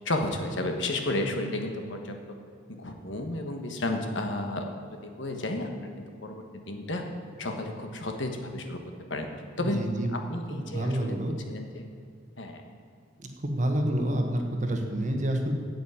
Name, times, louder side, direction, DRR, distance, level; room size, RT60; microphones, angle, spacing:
voice 1, 0.0-2.2 2.7-5.7 6.0-7.0 7.4-8.8 9.1-9.3 9.6-11.2 11.5-11.8 12.4-12.6, left 1 dB, 65° left, 4 dB, 1.4 m, -32 dB
voice 2, 9.6-10.1 10.5-11.3 13.2-15.5, right 1 dB, 40° right, 4 dB, 1.3 m, -28 dB
8.7 x 8.2 x 8.6 m, 2.3 s
head